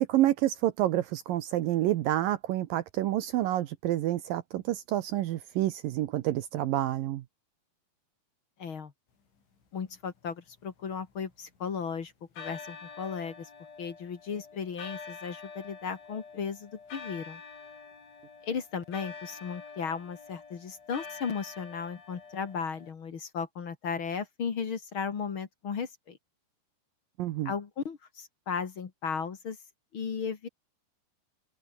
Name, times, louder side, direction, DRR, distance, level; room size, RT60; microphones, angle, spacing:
voice 1, 0.0-7.2 27.2-27.5, right 14 dB, 80° right, 2.0 m, -28 dB
voice 2, 8.6-8.9 9.7-13.5 13.8-17.4 18.4-26.2 27.4-29.6 29.9-30.5, left 6 dB, 45° left, 1.7 m, -35 dB
sound 1, 10.3-11.8 12.4-22.9, left 5 dB, 90° left, 9.7 m, -46 dB
open air
omnidirectional pair, 5.2 m